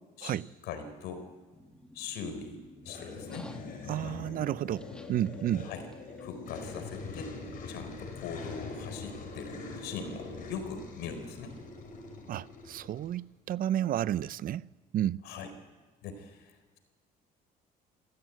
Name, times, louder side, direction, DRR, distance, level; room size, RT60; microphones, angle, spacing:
voice 1, 0.2-1.2 1.9-2.6 2.8-3.5 4.0-4.5 5.6-5.8 6.2-7.3 7.7-11.6 15.2-15.5 16.0-16.8, left 5 dB, 85° left, 4.4 m, -41 dB
sound 1, 1.5-6.5, left 1 dB, 5° left, 2.3 m, -54 dB
sound 2, 2.8-13.2, left 3 dB, 55° left, 5.8 m, -43 dB
voice 2, 3.9-5.7 12.3-15.2, right 11 dB, 55° right, 0.6 m, -32 dB
27.0 x 15.5 x 9.4 m
cardioid pair, 110°, 17 cm